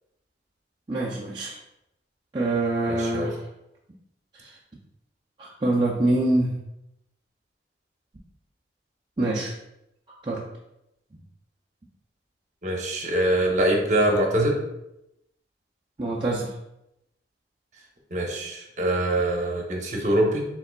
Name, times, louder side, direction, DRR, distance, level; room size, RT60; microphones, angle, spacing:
voice 1, 0.9-1.6 2.3-3.4 4.3-4.6 5.4-6.6 9.2-9.5 10.2-10.4 16.0-16.5, right 2 dB, 25° right, -5 dB, 0.4 m, -25 dB
voice 2, 2.9-3.3 12.6-14.6 18.1-20.5, right 1 dB, 45° right, 1 dB, 0.8 m, -24 dB
4.8 x 3.8 x 2.2 m, 0.85 s
head